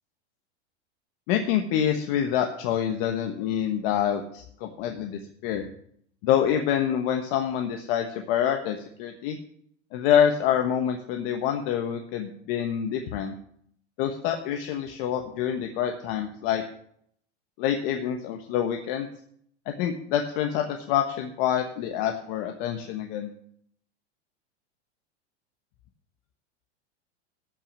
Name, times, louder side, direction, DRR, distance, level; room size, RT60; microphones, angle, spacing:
voice 1, 1.3-5.7 6.2-9.4 9.9-13.3 14.0-16.6 17.6-19.1 19.8-23.3, left 9 dB, 55° left, 4 dB, 1.3 m, -26 dB
13.5 x 6.1 x 7.0 m, 0.67 s
supercardioid pair, 130°, 34 cm